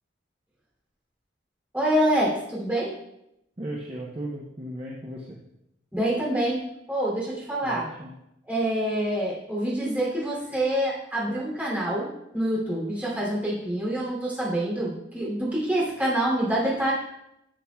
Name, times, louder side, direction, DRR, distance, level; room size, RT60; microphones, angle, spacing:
voice 1, 1.7-2.9 5.9-6.6 6.9-7.9 8.5-12.1 12.3-16.9, right 1 dB, 10° right, -6 dB, 2.7 m, -26 dB
voice 2, 3.6-5.4 7.6-8.2, right 1 dB, 30° right, -2 dB, 0.7 m, -36 dB
11.5 x 7.0 x 2.3 m, 0.84 s
head